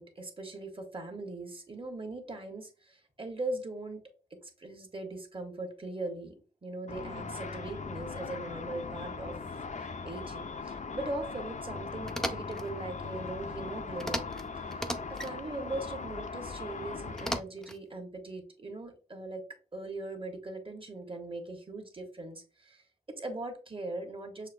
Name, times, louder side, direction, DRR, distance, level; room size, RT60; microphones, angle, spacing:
voice 1, 0.0-4.0 4.3-9.4 9.7-14.3 14.6-14.8 15.1-19.4 19.7-22.8 23.1-24.5, right 2 dB, 30° right, 4 dB, 1.2 m, -40 dB
Car / Traffic noise roadway noise / Engine, 6.9-17.4, left 4 dB, 45° left, 0.5 m, -40 dB
sound 1, 12.1-12.7 14.0-14.4 14.7-15.3 17.2-17.8, equal, 5° left, 0.6 m, -35 dB
6.4 x 2.6 x 2.6 m, 0.36 s
wide cardioid pair, 75°, 17 cm